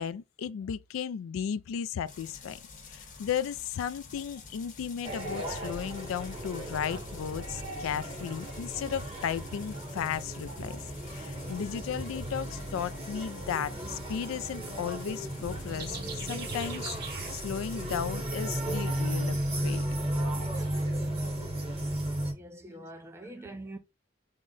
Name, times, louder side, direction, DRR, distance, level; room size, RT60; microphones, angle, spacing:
voice 1, 0.0-2.6 2.9-10.8 11.1-16.9 17.3-19.8, left 8 dB, 90° left, 0.3 m, -35 dB
sound 1, 2.1-17.9, left 4 dB, 40° left, 0.8 m, -49 dB
sound 2, 5.0-22.3, right 1 dB, 30° right, 1.3 m, -35 dB
sound 3, 15.7-21.6, right 7 dB, 55° right, 0.6 m, -46 dB
voice 2, 22.3-23.8, right 1 dB, 15° right, 0.5 m, -45 dB
3.7 x 2.1 x 3.7 m
head